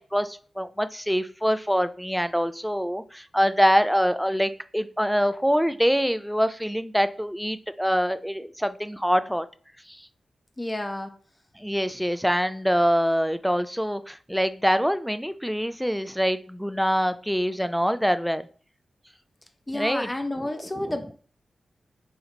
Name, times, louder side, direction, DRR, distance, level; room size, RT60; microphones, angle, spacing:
voice 1, 0.0-9.5 9.9-10.1 11.6-18.4 19.7-20.1, equal, ahead, 12 dB, 0.3 m, -24 dB
voice 2, 10.6-11.1 19.7-21.1, left 1 dB, 20° left, 7 dB, 0.7 m, -30 dB
4.2 x 2.9 x 3.8 m, 0.43 s
cardioid pair, 75°, 0 cm